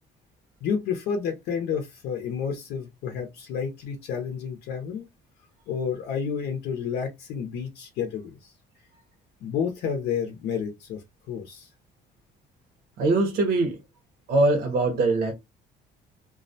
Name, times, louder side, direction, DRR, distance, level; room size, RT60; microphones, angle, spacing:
voice 1, 0.6-5.1 5.7-8.5 9.4-11.7, left 7 dB, 80° left, 0.6 m, -30 dB
voice 2, 13.0-13.8 14.3-15.3, right 2 dB, 60° right, 0.7 m, -22 dB
2.3 x 2.1 x 2.6 m
cardioid pair, 110°, 17 cm